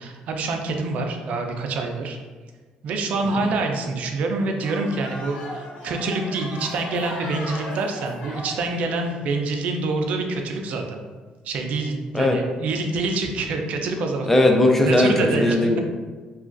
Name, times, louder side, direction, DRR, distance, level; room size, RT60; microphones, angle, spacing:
voice 1, 0.0-2.2 2.8-11.0 11.4-14.3 14.8-15.6, right 3 dB, 65° right, 3 dB, 0.4 m, -26 dB
sound 1, 4.6-9.1, left 1 dB, 60° left, 0.9 m, -36 dB
voice 2, 14.3-15.8, left 1 dB, 10° left, 2 dB, 0.4 m, -18 dB
2.9 x 2.4 x 2.4 m, 1.4 s
cardioid pair, 120°, 3 cm